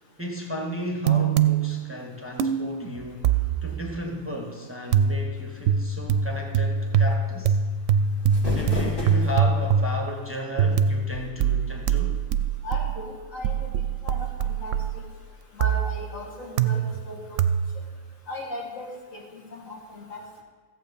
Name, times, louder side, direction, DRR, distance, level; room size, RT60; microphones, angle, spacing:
voice 1, 0.2-7.6 8.4-12.2, equal, 10° right, 0 dB, 1.1 m, -34 dB
sound 1, 1.0-2.0 2.4-3.8 4.9-10.3 10.6-15.2 15.6-16.1 16.6-17.1 17.4-17.9, right 6 dB, 70° right, 0.9 m, -24 dB
sound 2, 8.0-9.6, equal, 40° left, 2.2 m, -31 dB
voice 2, 12.6-13.7 14.0-15.0 15.5-17.4 18.3-20.2, left 1 dB, 70° left, -1 dB, 2.1 m, -37 dB
14.0 x 7.7 x 5.3 m, 1.5 s
omnidirectional pair, 1.4 m